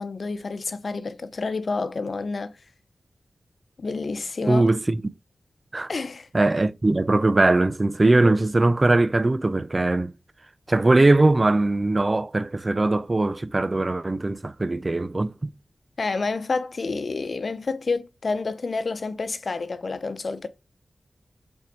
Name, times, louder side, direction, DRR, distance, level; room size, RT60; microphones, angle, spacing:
voice 1, 0.0-2.5 3.8-4.7 5.9-6.3 16.0-20.5, left 3 dB, 65° left, 0.8 m, -29 dB
voice 2, 4.4-5.0 5.7-5.9 6.3-10.1 10.7-15.5, right 2 dB, 40° right, 0.6 m, -20 dB
5.7 x 4.5 x 6.1 m
cardioid pair, 45°, 0 cm